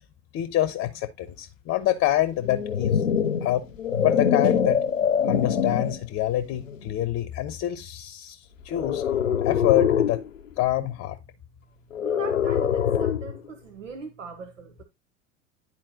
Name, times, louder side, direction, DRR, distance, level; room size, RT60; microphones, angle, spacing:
voice 1, 0.3-3.0 3.4-3.6 4.0-4.8 5.2-9.0 9.4-10.2 10.6-11.2, left 13 dB, 35° left, 0.8 m, -26 dB
sound 1, 2.4-6.0 6.7-6.9 8.7-10.2 11.9-13.4, left 7 dB, 85° left, 0.7 m, -24 dB
voice 2, 12.0-14.8, right 5 dB, 80° right, 1.0 m, -40 dB
10.5 x 4.4 x 2.8 m
figure-of-eight pair, 75°, 38 cm